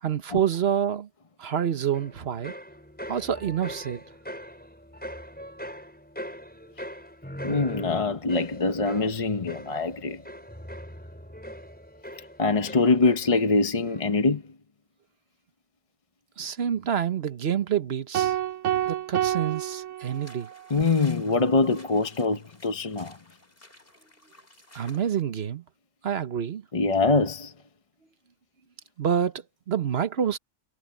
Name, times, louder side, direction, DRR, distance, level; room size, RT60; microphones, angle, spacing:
voice 1, 0.0-1.1 1.4-2.5 3.1-4.0 16.4-18.4 18.8-20.5 24.7-25.6 26.0-26.7 29.0-30.4, right 8 dB, 60° right, 1.2 m, -27 dB
sound 1, 1.9-13.5 13.8-14.3, equal, 5° left, 5.3 m, -41 dB
voice 2, 7.4-10.2 12.4-14.4 20.7-23.2 26.7-27.5, left 3 dB, 30° left, 0.8 m, -24 dB
sound 2, 18.1-20.6, right 12 dB, 85° right, 1.1 m, -28 dB
sound 3, 20.0-25.1, left 1 dB, 50° left, 5.7 m, -53 dB
omnidirectional pair, 1.2 m